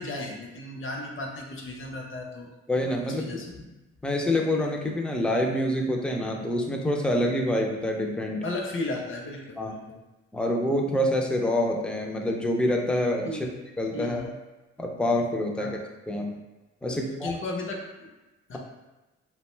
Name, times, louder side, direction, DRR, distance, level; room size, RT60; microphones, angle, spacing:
voice 1, 0.0-2.5 3.0-3.5 8.4-10.0 13.2-13.5 13.9-14.3 15.6-15.7 16.8-18.1 18.5-18.6, left 2 dB, 45° left, 0 dB, 0.6 m, -35 dB
voice 2, 2.7-3.3 3.6-3.7 4.0-8.4 9.6-9.7 10.3-13.5 13.8-14.3 14.8-15.8 16.1-16.3 16.8-17.3, left 1 dB, 5° left, 0 dB, 0.4 m, -26 dB
2.5 x 2.2 x 3.1 m, 1.1 s
cardioid pair, 90°, 30 cm